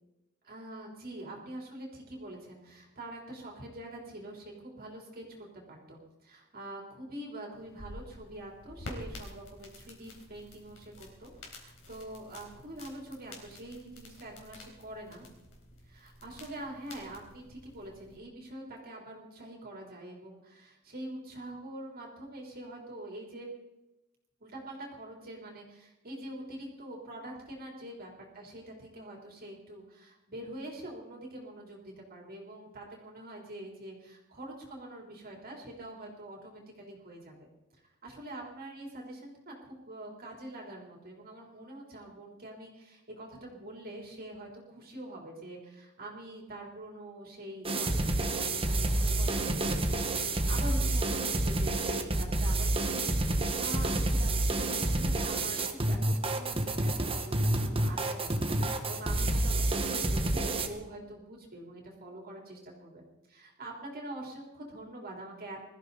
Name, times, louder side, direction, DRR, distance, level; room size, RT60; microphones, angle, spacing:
voice 1, 0.4-15.3 15.9-23.5 24.4-37.5 38.0-53.0 53.4-65.7, right 1 dB, 45° right, -1 dB, 3.6 m, -45 dB
sound 1, 7.5-18.2, left 1 dB, 65° left, 4.0 m, -49 dB
sound 2, 47.6-60.7, right 2 dB, 25° right, 1.4 m, -29 dB
22.0 x 14.0 x 4.1 m, 0.97 s
head